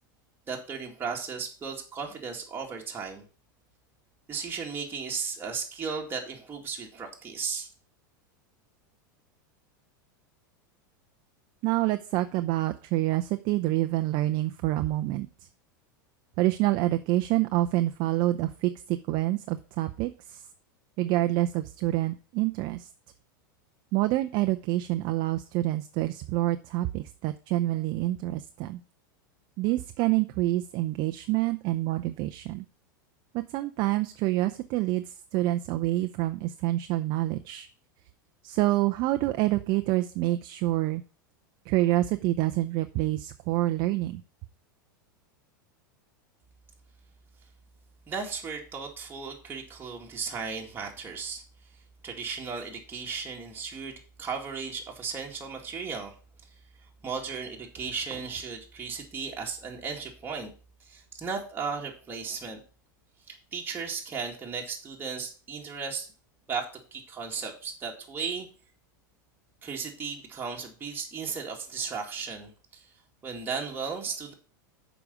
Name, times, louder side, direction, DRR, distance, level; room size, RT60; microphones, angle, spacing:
voice 1, 0.5-3.2 4.3-7.7 48.1-51.4 52.0-56.2 56.8-60.5 60.8-62.6 63.3-66.1 66.5-68.5 69.6-72.9 73.2-74.3, right 5 dB, 20° right, -1 dB, 2.1 m, -35 dB
voice 2, 11.6-15.3 16.4-20.4 21.0-22.9 23.9-28.8 29.6-32.7 33.3-37.7 38.4-41.0 41.7-44.2, right 16 dB, 50° right, 9 dB, 0.6 m, -27 dB
6.9 x 5.0 x 6.9 m, 0.38 s
hypercardioid pair, 105°, 11 cm